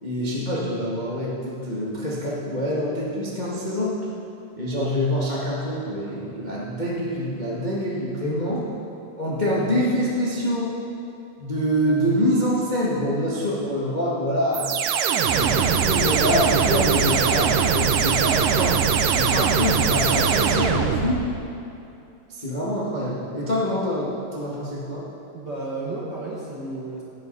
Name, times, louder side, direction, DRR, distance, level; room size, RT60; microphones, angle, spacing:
voice 1, 0.0-4.0 4.6-8.6 9.2-10.7 11.4-14.8 15.3-18.8 19.1-21.2 22.3-25.0, equal, 65° left, -7 dB, 0.4 m, -25 dB
sound 1, 14.5-21.4, right 7 dB, 75° right, 2.1 m, -21 dB
voice 2, 25.3-27.0, right 2 dB, 50° right, -6 dB, 1.3 m, -32 dB
17.0 x 10.0 x 4.1 m, 2.7 s
omnidirectional pair, 4.1 m